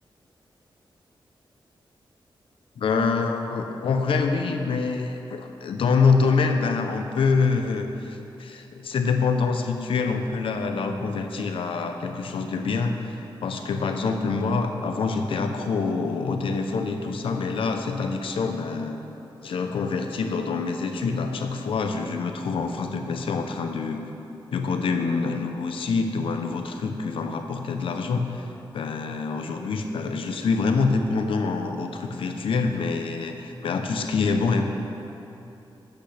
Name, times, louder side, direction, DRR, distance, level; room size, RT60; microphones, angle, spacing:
voice 1, 2.8-19.0 19.4-24.0 24.5-28.5 28.7-34.7, left 4 dB, 85° left, 5 dB, 0.7 m, -26 dB
11.5 x 8.2 x 3.4 m, 2.9 s
wide cardioid pair, 170°, 9 cm